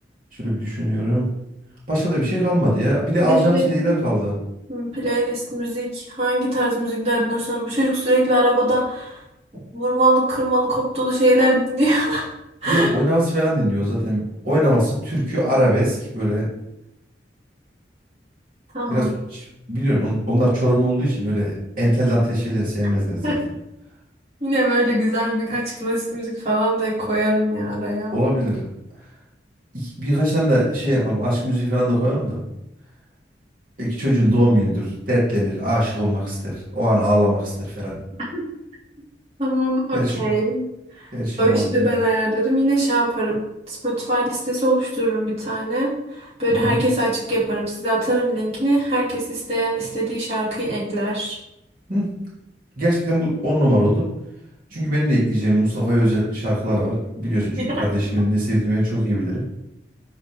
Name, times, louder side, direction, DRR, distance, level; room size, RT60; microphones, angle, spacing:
voice 1, 0.4-1.3 1.9-4.3 12.7-16.5 18.9-23.3 28.1-28.7 29.7-32.4 33.8-38.0 39.9-40.3 41.1-41.8 46.6-46.8 51.9-52.1 52.8-54.1 54.7-59.4, equal, 55° right, -6 dB, 3.0 m, -21 dB
voice 2, 3.2-3.7 4.7-9.2 9.7-12.2 12.6-12.9 18.7-19.1 23.2-23.4 24.4-28.1 38.3-38.4 39.4-40.6 41.0-41.1 41.4-43.4 43.7-51.4 57.6-57.8, right 1 dB, 35° right, -8 dB, 3.0 m, -22 dB
12.0 x 4.3 x 3.6 m, 0.87 s
head